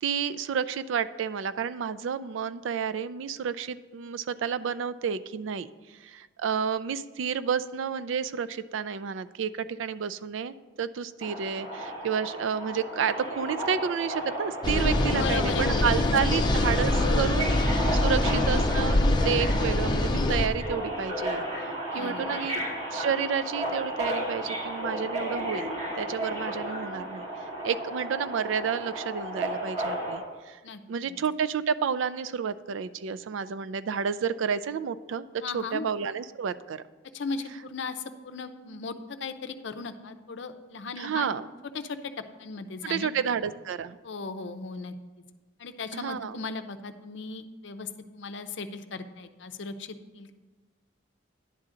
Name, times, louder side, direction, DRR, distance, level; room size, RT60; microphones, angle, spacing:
voice 1, 0.0-5.7 6.0-17.5 17.9-19.0 19.2-21.4 21.9-22.6 22.9-25.7 26.0-27.2 27.6-30.6 30.9-35.3 35.5-36.8 41.0-41.5 42.8-44.0 45.9-46.4, right 7 dB, 80° right, 14 dB, 0.4 m, -30 dB
Subway metro underground, 11.2-30.2, right 1 dB, 40° right, 2.3 m, -34 dB
sound 1, 14.6-20.5, left 1 dB, 25° left, 0.5 m, -24 dB
voice 2, 15.1-16.4 17.0-17.4 21.9-22.2 30.6-30.8 31.1-31.2 35.4-35.9 37.1-41.3 41.7-42.1 42.4-43.1 44.0-44.9 45.6-50.3, left 4 dB, 65° left, 9 dB, 0.6 m, -37 dB
10.5 x 3.8 x 7.4 m, 1.2 s
head